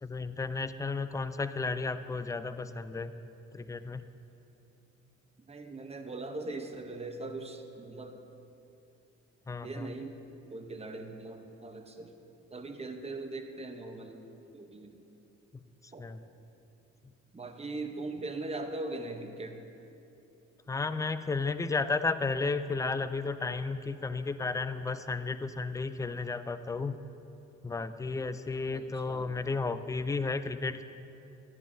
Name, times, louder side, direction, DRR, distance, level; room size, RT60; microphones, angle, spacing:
voice 1, 0.0-3.1 3.5-4.1 9.5-9.9 15.5-16.2 20.7-27.0 27.6-30.8, left 3 dB, 10° left, 12 dB, 0.3 m, -33 dB
voice 2, 5.5-8.2 9.6-10.2 10.5-12.1 12.5-14.2 14.5-15.0 15.9-16.0 17.3-19.6 28.7-29.3, right 2 dB, 20° right, 5 dB, 0.9 m, -40 dB
13.0 x 10.0 x 2.7 m, 2.8 s
cardioid pair, 90°, 30 cm